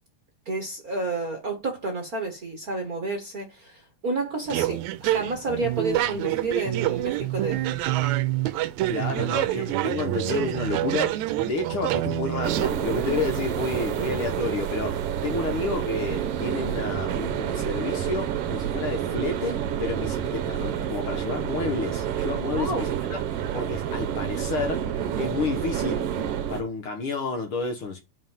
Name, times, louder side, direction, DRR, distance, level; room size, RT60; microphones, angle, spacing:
voice 1, 0.4-7.6 22.6-22.9, right 3 dB, 40° right, 1.4 m, -30 dB
sound 1, 4.5-12.7, right 14 dB, 85° right, 1.9 m, -26 dB
voice 2, 8.9-23.2 23.5-26.1 26.5-28.0, left 4 dB, 55° left, 1.8 m, -30 dB
sound 2, 12.4-26.6, right 9 dB, 65° right, 1.7 m, -29 dB
5.5 x 5.4 x 5.5 m
omnidirectional pair, 3.3 m